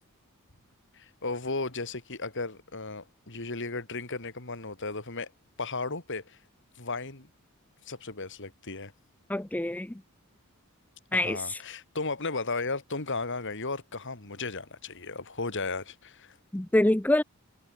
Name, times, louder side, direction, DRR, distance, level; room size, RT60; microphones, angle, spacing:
voice 1, 0.9-5.3 5.6-6.4 6.8-7.3 7.9-8.9 11.1-16.4, left 3 dB, 55° left, 3.5 m, -35 dB
voice 2, 9.3-9.9 11.1-11.6 16.5-17.2, left 1 dB, 5° left, 0.5 m, -25 dB
head